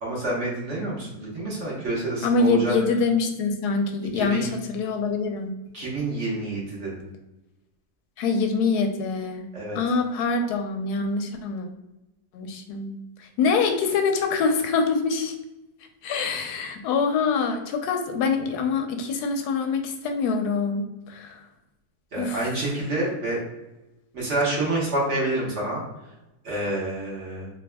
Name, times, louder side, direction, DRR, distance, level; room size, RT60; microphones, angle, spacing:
voice 1, 0.0-2.7 4.1-4.5 5.7-7.1 9.5-9.8 22.1-23.4 24.1-25.8 26.4-27.5, right 2 dB, 50° right, -5 dB, 1.4 m, -28 dB
voice 2, 2.2-5.5 8.2-9.5 9.7-11.7 12.3-12.9 13.2-15.3 16.0-21.4 22.2-22.4, left 4 dB, 85° left, 5 dB, 1.1 m, -25 dB
3.5 x 3.4 x 2.2 m, 0.97 s
omnidirectional pair, 1.7 m